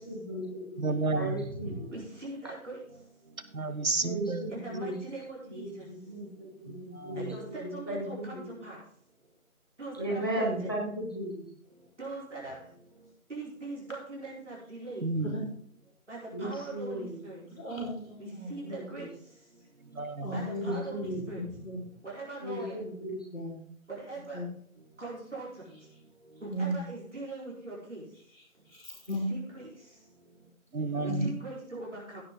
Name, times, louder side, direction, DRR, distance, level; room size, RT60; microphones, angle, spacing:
voice 1, 0.0-1.7 4.0-4.9 5.4-6.3 6.6-8.5 9.9-11.4 16.3-17.2 18.6-19.1 20.4-21.2 22.4-23.2, right 1 dB, 15° left, -3 dB, 1.6 m, -36 dB
voice 2, 0.8-1.5 3.5-4.5 6.7-7.4 15.0-15.5 19.9-20.4 30.7-31.4, right 3 dB, 70° right, 11 dB, 1.4 m, -32 dB
voice 3, 1.9-2.8 4.5-5.7 7.2-8.8 9.8-10.7 12.0-12.6 13.3-15.0 16.1-17.4 18.2-19.1 20.3-21.4 22.1-22.8 24.0-24.4 25.0-25.5 26.4-28.0 29.1-29.6 31.2-32.2, right 2 dB, 55° right, -5 dB, 4.4 m, -41 dB
voice 4, 17.5-18.7 20.2-21.1 21.3-21.8 23.3-23.6 24.3-24.5 26.5-26.9 28.7-29.3 31.1-31.2, equal, 65° left, -1 dB, 5.2 m, -36 dB
16.5 x 6.6 x 3.7 m, 0.62 s
figure-of-eight pair, 170°, 43 cm